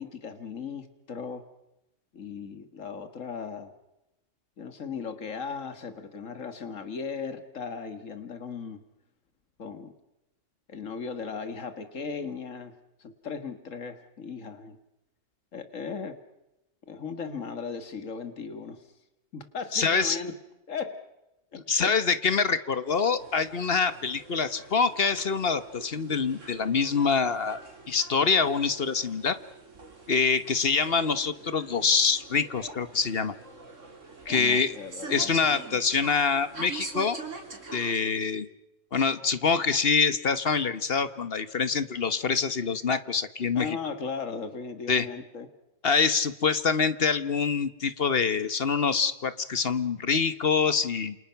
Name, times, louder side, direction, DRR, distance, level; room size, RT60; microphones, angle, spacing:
voice 1, 0.0-1.4 2.1-3.7 4.6-8.8 9.6-9.9 10.7-12.7 13.0-14.8 15.5-16.2 16.9-18.8 19.3-20.3 20.7-21.0 21.5-21.9 34.3-35.3 43.6-45.5, left 5 dB, 75° left, 9 dB, 2.2 m, -37 dB
voice 2, 19.7-20.2 21.7-27.6 27.9-29.4 30.1-33.3 34.3-34.8 35.1-37.2 37.7-38.5 38.9-43.8 44.9-45.1 45.8-51.2, left 5 dB, 50° left, 13 dB, 1.3 m, -25 dB
sound 1, 23.2-38.0, right 3 dB, 70° right, 3.7 m, -45 dB
28.5 x 28.0 x 5.8 m, 0.91 s
omnidirectional pair, 1.3 m